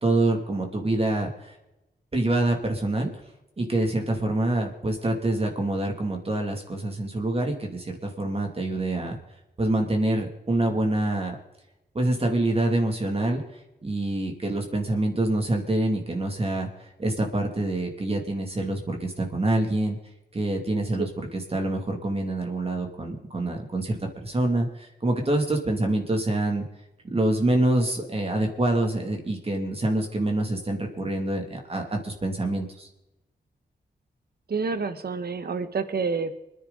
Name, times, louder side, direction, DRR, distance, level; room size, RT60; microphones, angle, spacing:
voice 1, 0.0-1.5 2.1-3.1 3.6-9.2 9.6-11.4 11.9-13.4 13.8-20.0 20.3-21.1 21.5-24.0 24.2-26.6 27.0-32.9, right 2 dB, 35° right, 2 dB, 2.8 m, -26 dB
voice 2, 34.5-36.4, right 4 dB, 60° right, 9 dB, 1.5 m, -28 dB
26.0 x 10.5 x 4.2 m, 0.95 s
wide cardioid pair, 105°, 18 cm